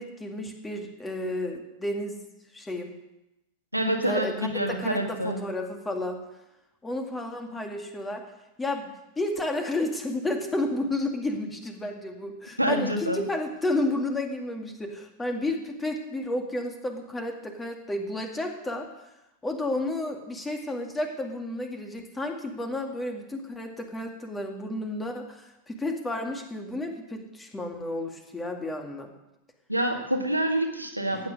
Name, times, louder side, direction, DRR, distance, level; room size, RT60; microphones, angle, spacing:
voice 1, 0.0-2.2 2.5-2.9 4.0-6.2 6.8-8.2 8.6-19.1 19.4-29.1 31.1-31.3, left 1 dB, 10° left, 4 dB, 2.1 m, -31 dB
voice 2, 3.7-5.4 12.6-13.2 29.7-31.3, right 1 dB, 85° right, 2 dB, 1.8 m, -27 dB
15.0 x 9.5 x 6.4 m, 0.93 s
figure-of-eight pair, 90°, 0 cm